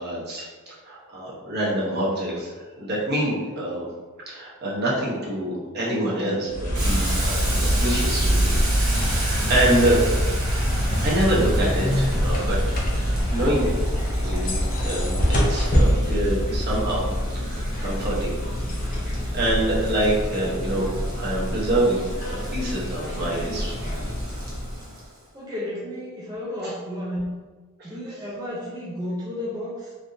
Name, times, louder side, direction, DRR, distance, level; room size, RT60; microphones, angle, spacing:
voice 1, 0.0-2.5 2.8-3.9 4.3-8.6 9.0-10.0 11.0-13.7 14.2-14.6 14.8-17.0 17.3-18.4 19.0-20.9 21.1-23.8 26.6-26.7 27.8-28.1, right 1 dB, 50° right, -6 dB, 0.9 m, -26 dB
sound 1, 6.5-24.9, equal, 35° left, 0.6 m, -24 dB
Boiling, 6.7-25.2, right 1 dB, 80° right, 0.9 m, -35 dB
voice 2, 25.3-27.3 27.8-29.9, left 1 dB, 20° right, -8 dB, 0.5 m, -32 dB
3.3 x 2.6 x 2.6 m, 1.4 s
head